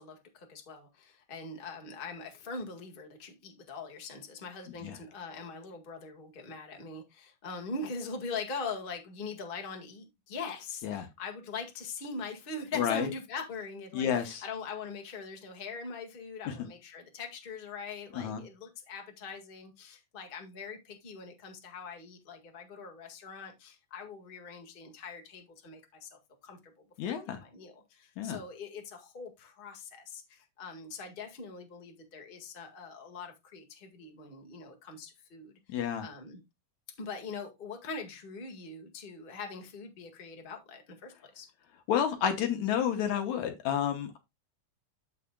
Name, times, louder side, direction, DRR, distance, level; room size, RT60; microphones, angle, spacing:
voice 1, 0.0-35.6 36.0-36.4 37.0-41.5, left 4 dB, 25° left, 1.2 m, -42 dB
voice 2, 12.8-13.1 13.9-14.4 16.5-16.6 18.1-18.4 27.0-27.4 28.2-28.4 35.7-36.1 41.9-44.2, left 9 dB, 70° left, 2.2 m, -30 dB
14.0 x 4.9 x 2.2 m
omnidirectional pair, 3.6 m